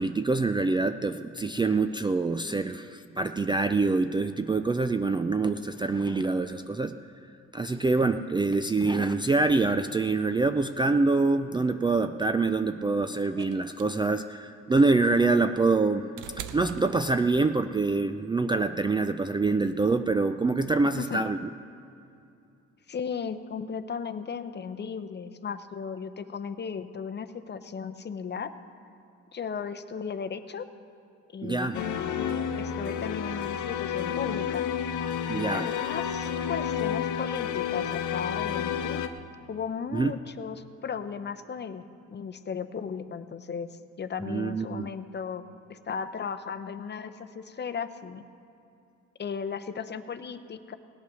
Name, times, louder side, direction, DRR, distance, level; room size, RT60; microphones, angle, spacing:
voice 1, 0.0-6.9 7.5-16.1 16.5-21.4 31.4-31.8 35.3-35.7 39.9-40.1 44.2-44.9, right 3 dB, 15° right, 9 dB, 0.3 m, -25 dB
sound 1, 13.4-17.6 18.9-19.0, right 9 dB, 85° right, 0.7 m, -44 dB
voice 2, 22.9-28.5 29.3-30.7 31.3-32.1 32.6-34.6 35.4-39.0 39.5-43.7 44.0-45.4 45.7-48.2 49.2-50.7, left 6 dB, 35° left, 10 dB, 0.7 m, -36 dB
sound 2, 31.7-39.1, left 8 dB, 75° left, 0.8 m, -30 dB
18.0 x 8.4 x 6.2 m, 2.7 s
cardioid pair, 90°, 30 cm